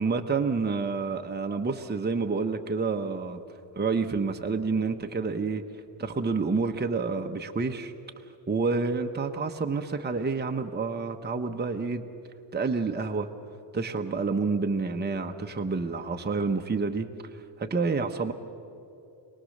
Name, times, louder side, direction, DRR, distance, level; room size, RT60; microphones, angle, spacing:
voice 1, 0.0-3.4 3.7-5.7 6.0-7.9 8.5-12.0 12.5-13.3 13.7-18.3, right 4 dB, 20° right, 4 dB, 1.0 m, -28 dB
27.0 x 19.0 x 6.6 m, 2.7 s
cardioid pair, 100°, 47 cm